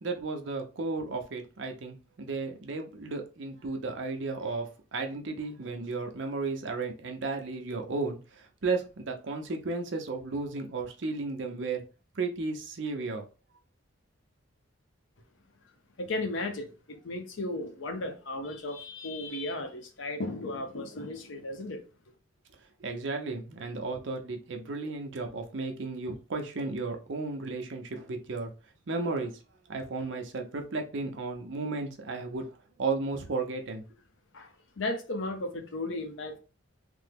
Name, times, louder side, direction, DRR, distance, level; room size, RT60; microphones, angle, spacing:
voice 1, 0.0-11.8 12.2-13.2 22.8-28.5 28.9-29.3 29.7-32.5 32.8-33.8, right 3 dB, 65° right, 0.6 m, -34 dB
voice 2, 16.0-21.8 34.3-34.5 34.8-36.4, left 2 dB, 70° left, 0.7 m, -35 dB
3.3 x 2.0 x 3.4 m
head